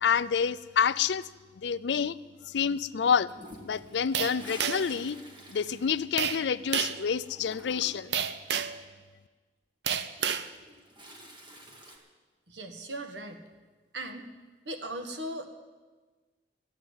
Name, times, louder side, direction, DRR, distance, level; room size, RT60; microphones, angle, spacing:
voice 1, 0.0-1.2 1.6-2.2 2.5-3.3 3.6-5.2 5.5-8.2, left 7 dB, 80° left, 17 dB, 0.4 m, -28 dB
Toilet flush, 3.3-6.8 7.0-8.2 10.2-12.0, equal, 25° right, 1.8 m, -48 dB
sound 1, 4.1-5.0 6.2-6.4 6.7-7.0 8.1-8.8 9.9-10.5, right 7 dB, 75° right, 0.7 m, -29 dB
voice 2, 12.5-13.4 13.9-14.3 14.6-15.5, right 1 dB, 90° right, 5 dB, 1.6 m, -38 dB
13.0 x 8.9 x 9.4 m, 1.3 s
head